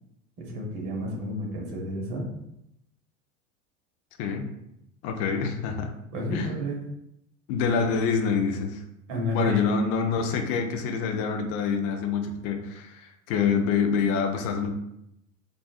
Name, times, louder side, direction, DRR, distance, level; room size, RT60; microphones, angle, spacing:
voice 1, 0.4-2.3 6.1-6.9 9.1-9.6, left 1 dB, 50° right, 0 dB, 1.1 m, -30 dB
voice 2, 5.0-5.9 6.3-6.5 7.5-8.8 9.3-14.7, left 5 dB, 35° left, 4 dB, 0.5 m, -26 dB
3.7 x 2.3 x 2.3 m, 0.80 s
figure-of-eight pair, 85°, 42 cm